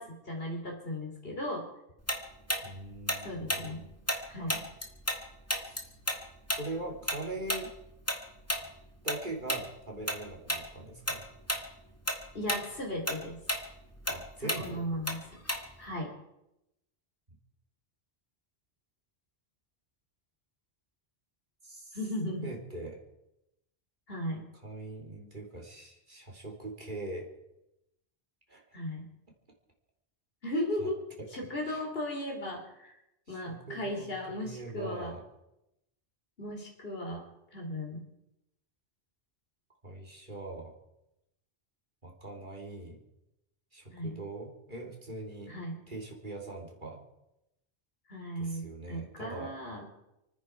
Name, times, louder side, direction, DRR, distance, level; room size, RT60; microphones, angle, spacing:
voice 1, 0.0-1.6 3.2-3.8 4.3-4.6 12.3-13.4 14.6-15.2 15.8-16.1 21.9-22.5 24.1-24.4 28.7-29.1 30.4-31.0 31.3-33.0 33.3-35.1 36.4-37.2 37.5-38.1 43.9-44.2 45.5-45.8 48.1-49.9, left 1 dB, 65° left, 0 dB, 3.6 m, -36 dB
Tick-tock, 2.1-5.2 5.5-10.2 10.5-10.7 11.1-11.7 11.9-15.9, equal, 15° left, 2.0 m, -33 dB
voice 2, 2.6-3.9 5.6-5.9 6.6-7.7 9.0-11.3 14.1-14.9 21.6-22.0 22.2-23.0 24.6-27.3 28.5-28.6 30.8-30.9 31.2-31.3 31.6-31.9 33.3-35.2 39.8-40.8 42.0-43.0 43.7-45.6 45.9-47.0 48.4-49.6, right 2 dB, 50° right, 0 dB, 3.5 m, -42 dB
29.5 x 9.8 x 4.7 m, 0.87 s
omnidirectional pair, 1.1 m